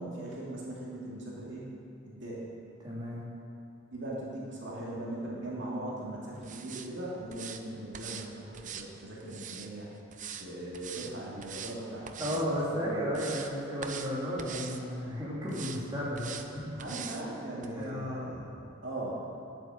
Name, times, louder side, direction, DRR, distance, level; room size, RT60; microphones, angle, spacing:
voice 1, 0.0-1.7 2.0-2.5 3.9-9.9 10.4-12.4 12.7-13.0 16.7-18.5 18.8-19.2, right 1 dB, 65° right, -6 dB, 2.6 m, -39 dB
voice 2, 2.8-3.2 12.2-16.6 17.8-18.3, equal, 20° right, -8 dB, 3.0 m, -33 dB
sound 1, 6.4-6.9 7.3-7.6 7.9-8.3 8.5-9.7 10.1-10.5 10.7-11.1 11.4-11.8 12.1-12.5 12.9-13.5 13.8-14.1 14.4-14.8 15.5-15.8 16.2-16.5 16.8-17.2 17.6-17.7, right 8 dB, 40° right, 0.6 m, -42 dB
10.5 x 8.8 x 7.2 m, 2.6 s
head